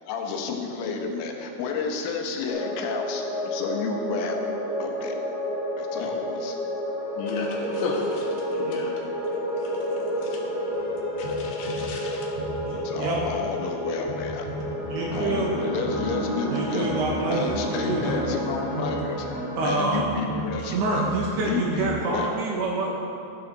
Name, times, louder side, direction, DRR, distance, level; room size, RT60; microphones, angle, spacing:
voice 1, 0.0-4.4 4.8-5.2 5.8-6.5 12.0-14.5 15.1-16.9 17.3-19.3 19.6-21.1 21.4-22.3, left 5 dB, 85° left, 2 dB, 3.6 m, -31 dB
sound 1, 2.5-19.8, left 1 dB, 25° right, 3.0 m, -30 dB
voice 2, 7.2-8.9 9.6-9.9 10.2-10.4 11.2-12.3, left 3 dB, 70° left, -1 dB, 3.2 m, -34 dB
sound 2, 10.7-22.0, right 1 dB, 10° left, 1.8 m, -37 dB
voice 3, 12.6-13.2 14.9-15.6 16.5-17.4 17.7-18.3 19.6-20.2 20.6-22.9, right 3 dB, 75° right, -2 dB, 2.6 m, -27 dB
11.5 x 11.5 x 3.9 m, 2.7 s
omnidirectional pair, 5.5 m